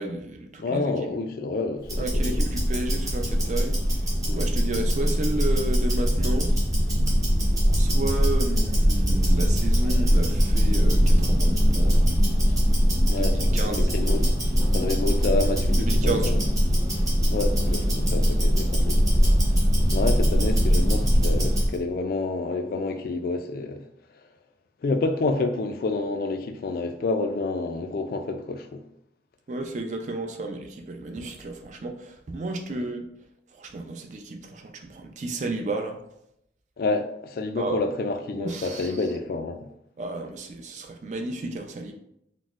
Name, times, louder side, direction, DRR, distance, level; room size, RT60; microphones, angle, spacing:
voice 1, 0.0-0.8 2.0-3.8 4.3-6.5 7.8-12.1 13.2-13.9 15.8-16.3 29.5-33.0 33.6-36.0 37.6-37.8 38.4-38.9 40.0-41.9, right 2 dB, 40° right, 0.4 m, -32 dB
voice 2, 0.6-2.4 4.3-4.4 13.1-16.4 17.3-19.0 19.9-23.8 24.8-28.8 32.8-32.9 36.8-39.7, left 3 dB, 55° left, 0.3 m, -29 dB
Tick-tock, 1.8-21.7, equal, 20° right, 0.9 m, -21 dB
4.0 x 2.1 x 2.4 m
head